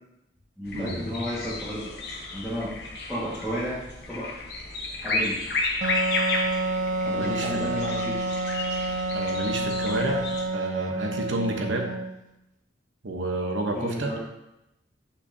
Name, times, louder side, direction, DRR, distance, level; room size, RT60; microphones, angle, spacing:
sound 1, 0.6-10.5, left 3 dB, 55° left, 1.0 m, -32 dB
voice 1, 0.6-1.8 2.3-2.7 3.1-3.8 4.1-4.3 5.0-5.4 7.0-8.2 13.7-14.2, equal, ahead, -13 dB, 1.7 m, -32 dB
Wind instrument woodwind instrument, 5.8-12.3, right 2 dB, 40° right, 0.4 m, -29 dB
voice 2, 7.1-7.7 9.1-11.9 13.0-14.1, right 2 dB, 80° right, 2 dB, 1.0 m, -30 dB
8.5 x 5.6 x 2.7 m, 0.89 s
head